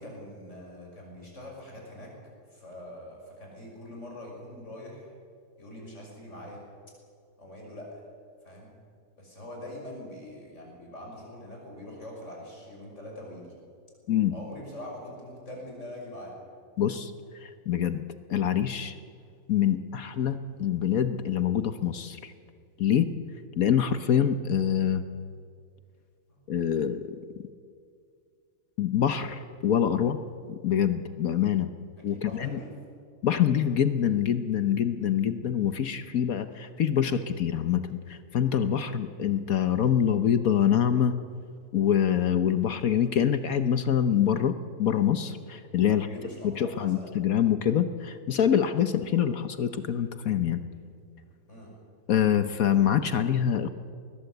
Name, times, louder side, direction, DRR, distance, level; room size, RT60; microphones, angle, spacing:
voice 1, 0.0-2.1 2.5-5.1 5.6-6.6 7.4-8.0 8.4-8.7 9.2-13.5 14.3-16.3 26.3-26.4 32.0-32.8 45.9-47.1 51.5-51.7, left 1 dB, 35° left, -1 dB, 6.5 m, -43 dB
voice 2, 16.8-17.1 17.4-18.0 18.3-18.9 19.5-22.3 22.8-23.1 23.6-25.0 26.5-27.0 28.8-30.2 30.5-31.7 32.0-32.6 33.2-41.1 41.7-46.1 46.4-50.6 52.1-53.7, left 9 dB, 55° left, 10 dB, 1.0 m, -25 dB
20.0 x 20.0 x 8.0 m, 2.3 s
omnidirectional pair, 2.2 m